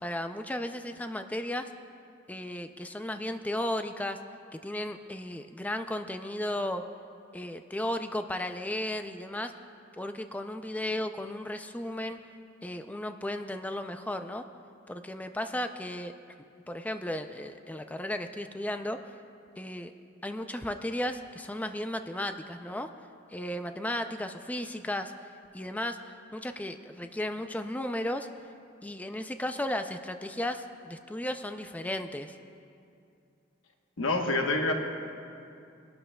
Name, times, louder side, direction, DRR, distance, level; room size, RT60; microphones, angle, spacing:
voice 1, 0.0-1.7 2.3-4.2 4.5-6.8 7.3-9.5 10.0-12.2 12.6-14.5 14.9-16.1 16.7-19.0 19.6-19.9 20.2-22.9 23.3-25.1 25.5-26.0 26.3-28.3 28.8-32.4, left 1 dB, 10° left, 7 dB, 0.4 m, -34 dB
voice 2, 34.0-34.7, left 2 dB, 85° left, 2 dB, 1.1 m, -26 dB
22.0 x 12.0 x 2.3 m, 2.5 s
head